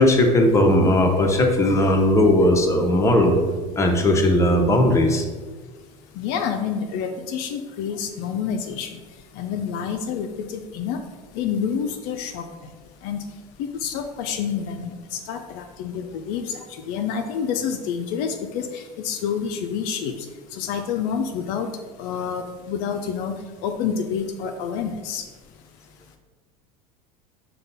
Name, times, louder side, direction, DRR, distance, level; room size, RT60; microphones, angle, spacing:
voice 1, 0.0-3.3 3.8-5.2, left 1 dB, 15° left, 2 dB, 0.7 m, -17 dB
voice 2, 6.2-9.0 9.4-11.0 11.3-12.5 13.0-13.2 13.6-16.6 16.9-20.3 20.5-21.7 22.0-23.3 23.6-25.2, left 7 dB, 65° left, 5 dB, 0.4 m, -28 dB
5.2 x 2.3 x 3.9 m, 1.4 s
supercardioid pair, 95°, 17 cm